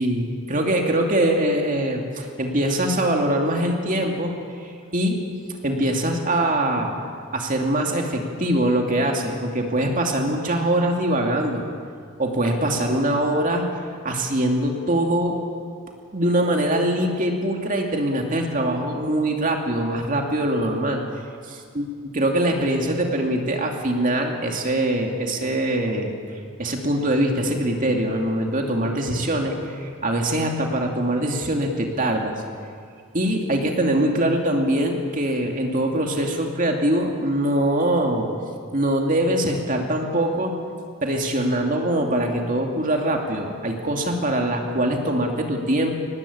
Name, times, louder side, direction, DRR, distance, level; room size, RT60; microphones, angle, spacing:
voice 1, 0.0-4.4 4.9-5.2 5.6-6.9 7.3-11.6 12.2-13.7 14.0-15.4 16.1-21.0 21.5-21.8 22.1-26.1 26.6-32.4 33.1-38.3 38.7-40.6 41.0-46.0, right 1 dB, 40° right, 2 dB, 2.6 m, -23 dB
23.0 x 19.5 x 8.7 m, 2.2 s
head